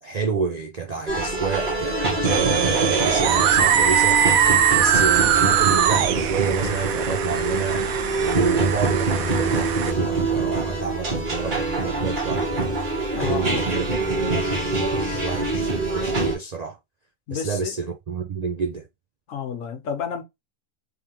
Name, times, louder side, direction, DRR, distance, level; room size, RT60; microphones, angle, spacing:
voice 1, 0.0-4.4 4.7-7.8 8.2-12.7 13.2-13.9 14.2-16.8 17.3-18.9, right 5 dB, 55° right, 0.4 m, -29 dB
sound 1, 1.1-16.4, right 2 dB, 35° right, 1.5 m, -25 dB
sound 2, 2.2-9.9, right 9 dB, 85° right, 1.0 m, -21 dB
voice 2, 13.1-13.6 17.3-17.8 19.3-20.2, left 7 dB, 70° left, 1.3 m, -30 dB
3.5 x 3.4 x 2.9 m
omnidirectional pair, 1.4 m